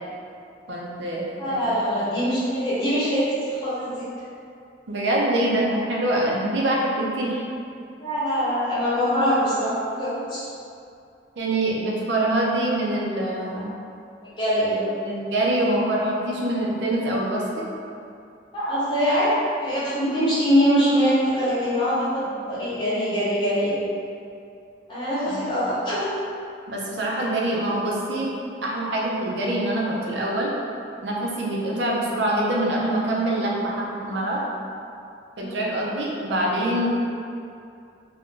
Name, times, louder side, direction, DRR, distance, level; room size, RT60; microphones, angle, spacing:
voice 1, 0.7-1.7 1.9-2.0 4.9-7.4 11.4-13.7 15.0-17.6 25.3-25.5 26.7-28.3 28.6-30.5 31.0-34.4 35.4-36.9, right 1 dB, 80° right, -3 dB, 0.5 m, -25 dB
voice 2, 1.4-4.1 8.0-9.7 10.0-10.5 14.2-14.9 18.5-19.3 19.6-23.7 24.9-26.0 35.4-35.6, equal, 25° left, -11 dB, 1.0 m, -23 dB
2.5 x 2.2 x 3.6 m, 2.5 s
head